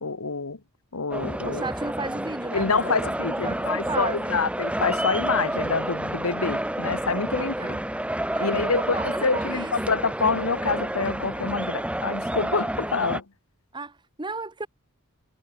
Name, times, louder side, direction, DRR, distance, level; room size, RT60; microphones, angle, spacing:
voice 1, 0.0-0.6 0.9-1.6 2.5-7.8 8.4-13.2, left 4 dB, 70° left, 1.3 m, -27 dB
sound 1, 1.1-13.2, right 1 dB, 5° right, 1.2 m, -29 dB
voice 2, 1.5-3.1 3.4-4.4 7.4-7.8 8.3-9.7 13.7-14.7, right 3 dB, 20° right, 1.4 m, -34 dB
head